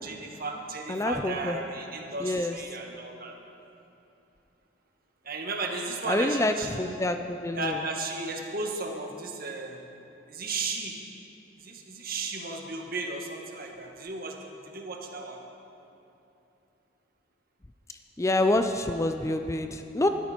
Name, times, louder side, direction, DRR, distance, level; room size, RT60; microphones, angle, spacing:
voice 1, 0.0-3.3 5.2-6.9 7.5-9.8 10.3-11.0 11.6-15.4, right 3 dB, 50° right, 2 dB, 1.7 m, -35 dB
voice 2, 0.9-1.6 2.2-2.5 6.1-7.8 18.2-20.1, left 1 dB, 15° left, 7 dB, 0.5 m, -27 dB
19.5 x 13.0 x 4.5 m, 2.9 s
head